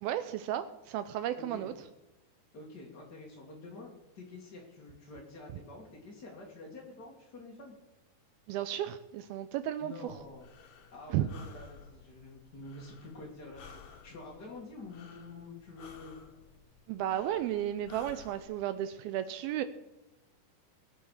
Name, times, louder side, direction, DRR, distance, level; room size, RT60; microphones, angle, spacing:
voice 1, 0.0-1.7 8.5-10.1 11.1-11.3 16.9-19.6, right 12 dB, 85° right, 11 dB, 2.2 m, -33 dB
voice 2, 1.3-1.7 2.5-7.7 9.8-10.5 10.9-16.2, left 2 dB, 40° left, -2 dB, 1.6 m, -48 dB
Breathing, 10.1-18.4, left 5 dB, 60° left, 2.6 m, -55 dB
20.0 x 8.7 x 6.4 m, 0.97 s
omnidirectional pair, 5.1 m